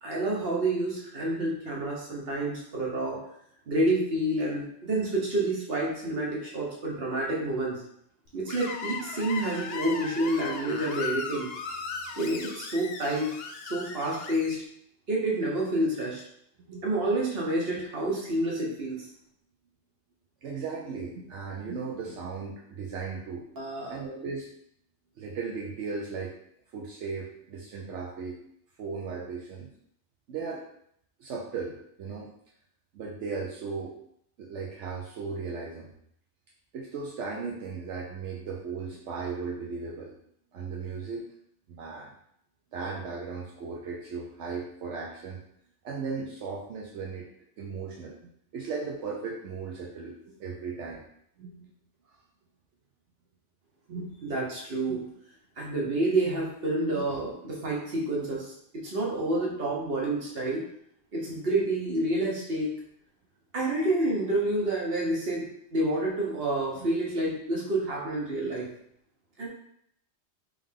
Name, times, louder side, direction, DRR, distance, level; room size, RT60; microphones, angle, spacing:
voice 1, 0.0-3.2 3.7-7.8 8.3-11.5 12.2-13.3 13.6-14.6 15.1-16.2 16.8-19.1 23.6-24.0 54.2-55.0 55.6-60.6 61.1-62.7 63.5-65.5 65.7-68.7 69.4-69.5, right 1 dB, 55° right, -3 dB, 1.3 m, -28 dB
Screech, 8.5-14.5, left 4 dB, 65° left, 0.7 m, -37 dB
voice 2, 20.4-23.4 23.9-24.5 25.2-26.3 26.7-28.4 28.8-29.7 30.3-30.6 31.2-32.3 32.9-33.9 34.4-35.9 36.7-40.1 40.5-41.3 41.7-42.1 42.7-45.4 45.8-47.3 47.6-48.2 48.5-51.0 51.4-51.7 53.9-54.2 54.9-55.0 56.9-57.1 68.4-68.5, right 4 dB, 80° right, -2 dB, 1.0 m, -36 dB
3.5 x 3.4 x 3.7 m, 0.72 s
omnidirectional pair, 1.2 m